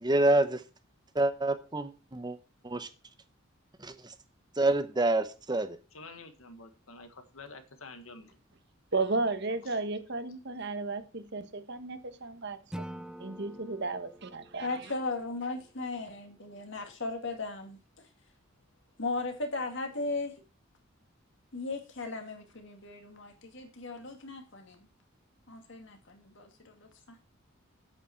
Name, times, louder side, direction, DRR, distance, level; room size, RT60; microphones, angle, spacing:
voice 1, 0.0-0.6 1.1-2.4 2.6-2.9 3.8-4.1 4.6-5.8, right 2 dB, 20° right, 0.8 m, -27 dB
voice 2, 5.9-8.3 9.6-9.8, left 3 dB, 80° left, 1.5 m, -48 dB
voice 3, 8.9-14.8, right 3 dB, 55° right, 1.2 m, -34 dB
Acoustic guitar / Strum, 12.7-15.9, right 1 dB, 5° right, 0.4 m, -46 dB
voice 4, 14.6-17.8 19.0-20.3 21.5-24.9 25.5-27.2, left 3 dB, 60° left, 2.3 m, -37 dB
8.4 x 8.2 x 4.4 m
head